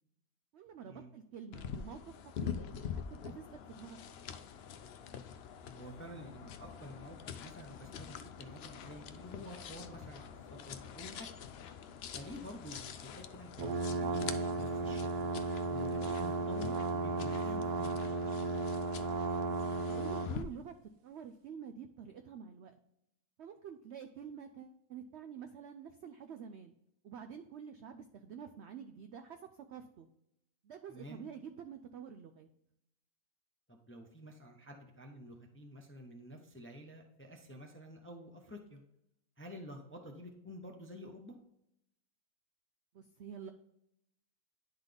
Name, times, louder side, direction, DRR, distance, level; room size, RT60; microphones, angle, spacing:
voice 1, 0.5-2.7 3.1-4.0 4.3-4.4 19.9-20.7 21.0-22.7 23.4-26.7 27.0-29.4 29.7-30.1 30.6-32.5 42.9-43.5, right 7 dB, 75° right, 8 dB, 0.6 m, -48 dB
sound 1, 1.5-20.4, left 7 dB, 85° left, 0.5 m, -45 dB
voice 2, 5.7-11.4 12.1-15.3 15.7-18.4 30.9-31.2 33.7-38.8 39.4-41.4, equal, 15° left, 3 dB, 0.5 m, -50 dB
sound 2, 13.6-20.3, right 3 dB, 90° right, 1.2 m, -35 dB
10.5 x 4.0 x 3.4 m, 0.80 s
omnidirectional pair, 1.6 m